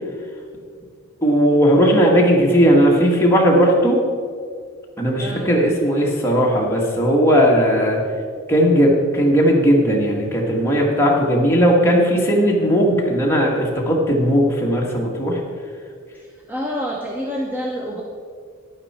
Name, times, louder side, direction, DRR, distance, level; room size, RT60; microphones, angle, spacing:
voice 1, 1.2-4.0 5.0-8.0 8.5-15.4, equal, 10° left, -3 dB, 1.5 m, -17 dB
voice 2, 5.2-5.5 16.1-18.0, equal, 10° right, -2 dB, 0.7 m, -28 dB
11.0 x 9.4 x 4.3 m, 2.1 s
head